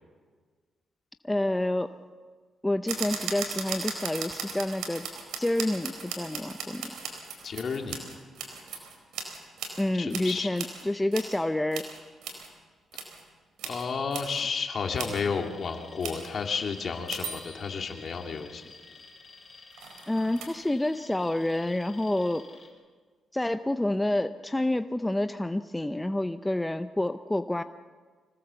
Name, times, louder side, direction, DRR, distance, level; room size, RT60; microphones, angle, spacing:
voice 1, 1.2-1.9 2.6-5.0 5.4-6.8 9.8-11.8 20.1-22.4 23.3-27.6, left 1 dB, 10° left, 9 dB, 0.6 m, -28 dB
sound 1, 2.9-9.8 10.1-11.4 11.7-12.5 12.9-13.2 13.6-13.8 14.1-14.4 15.0-15.2 16.0-16.3 17.1-18.0 19.7-20.5, right 6 dB, 90° right, 4.2 m, -37 dB
voice 2, 7.4-8.0 9.9-10.5 13.6-18.6, left 5 dB, 55° left, 3 dB, 2.5 m, -32 dB
Alarm, 14.7-22.7, left 4 dB, 40° left, 5.4 m, -51 dB
25.5 x 17.5 x 7.0 m, 1.5 s
cardioid pair, 80°, 0 cm